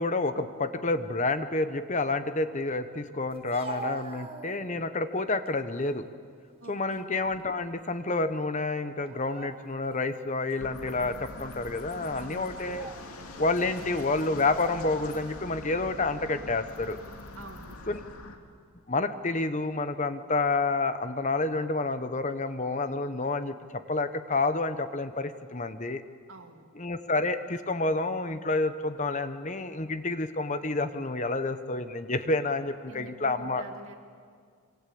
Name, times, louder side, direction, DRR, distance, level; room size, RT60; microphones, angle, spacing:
voice 1, 0.0-6.0 6.7-12.9 13.4-17.0 17.9-18.0 18.9-26.0 26.8-33.6, left 3 dB, 35° left, 10 dB, 1.0 m, -29 dB
Speech, 3.3-4.9 5.4-6.0 6.5-7.7 7.9-8.2 8.9-9.9 10.5-10.6 11.4-11.7 12.4-13.1 14.0-14.7, right 3 dB, 25° right, 1.8 m, -44 dB
voice 2, 6.6-7.1 12.1-12.6 17.4-17.9 26.3-26.7 32.9-34.0, right 2 dB, 70° right, 5 dB, 2.4 m, -47 dB
sound 1, 10.6-18.4, left 2 dB, 85° left, 2.7 m, -44 dB
25.5 x 25.5 x 8.6 m, 2.1 s
head